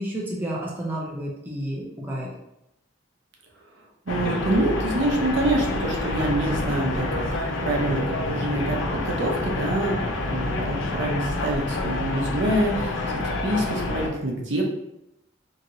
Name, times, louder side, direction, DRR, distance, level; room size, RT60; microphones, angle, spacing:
voice 1, 0.0-2.3, right 1 dB, 10° right, -4 dB, 0.5 m, -31 dB
sound 1, 4.1-14.1, left 2 dB, 85° left, 0.5 m, -28 dB
voice 2, 4.1-7.2 7.6-10.0 10.3-13.0 13.2-14.6, right 1 dB, 70° right, 0 dB, 0.6 m, -26 dB
2.9 x 2.7 x 2.6 m, 0.86 s
head